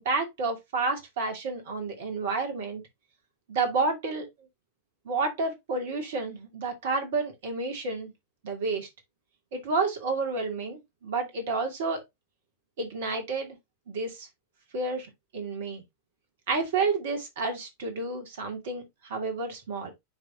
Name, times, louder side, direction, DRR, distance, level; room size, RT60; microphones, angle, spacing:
voice 1, 0.0-2.8 3.5-4.3 5.0-8.1 8.4-8.9 9.5-12.0 12.8-13.6 13.9-14.3 14.7-15.1 15.3-15.8 16.5-19.9, right 3 dB, 55° right, 2.3 m, -30 dB
9.6 x 3.5 x 2.9 m
figure-of-eight pair, 90°, 0 cm